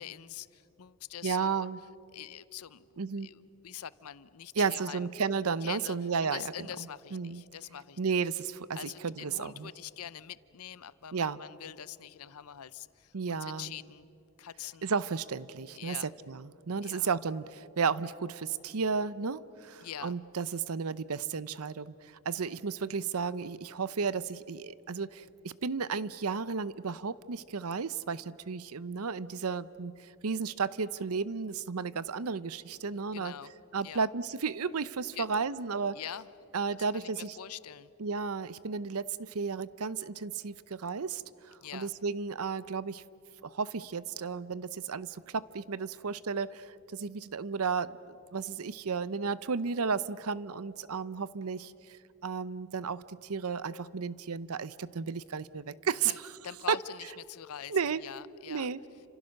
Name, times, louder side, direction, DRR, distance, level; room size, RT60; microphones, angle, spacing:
voice 1, 0.0-1.7 2.1-2.9 3.2-5.1 5.6-8.1 8.8-14.1 14.4-14.9 15.7-16.1 16.8-17.1 19.8-20.2 33.1-33.5 33.8-34.1 35.1-35.3 35.9-36.3 36.7-37.9 41.6-41.9 56.1-56.2 56.4-58.7, left 9 dB, 85° left, 17 dB, 0.7 m, -44 dB
voice 2, 1.2-1.8 3.0-3.3 4.6-6.5 7.1-7.4 8.0-9.7 11.1-11.4 13.1-13.7 14.8-33.3 33.7-36.0 36.5-37.4 38.0-43.0 43.4-56.1 56.7-56.8 57.7-58.0 58.5-58.8, right 5 dB, 80° right, 17 dB, 0.7 m, -33 dB
30.0 x 26.5 x 6.5 m, 2.7 s
head